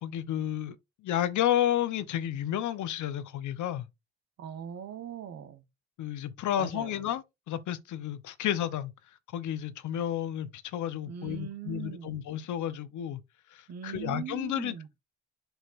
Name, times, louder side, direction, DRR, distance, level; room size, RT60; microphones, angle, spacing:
voice 1, 0.0-0.7 1.0-3.9 6.0-8.9 9.3-13.2 13.5-14.7, left 11 dB, 75° left, 1.0 m, -31 dB
voice 2, 4.4-5.6 6.6-6.9 11.1-12.2 13.7-14.9, right 9 dB, 60° right, 1.1 m, -40 dB
7.9 x 6.5 x 2.6 m
cardioid pair, 90°, 30 cm